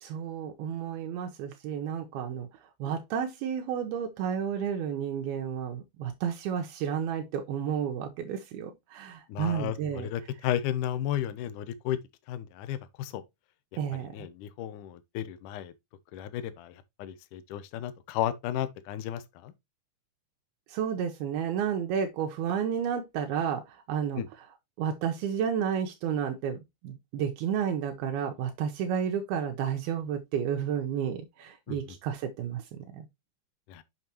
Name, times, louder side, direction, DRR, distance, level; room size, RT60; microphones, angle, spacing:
voice 1, 0.0-2.5 2.8-10.1 13.8-14.1 20.7-24.2 24.8-26.6 26.8-33.1, right 8 dB, 80° right, 2.7 m, -31 dB
voice 2, 9.3-12.0 12.3-13.2 14.0-15.7 16.1-19.5 24.2-24.3 31.7-32.0 33.7-33.8, left 11 dB, 80° left, 1.9 m, -34 dB
7.0 x 6.1 x 2.9 m
omnidirectional pair, 4.6 m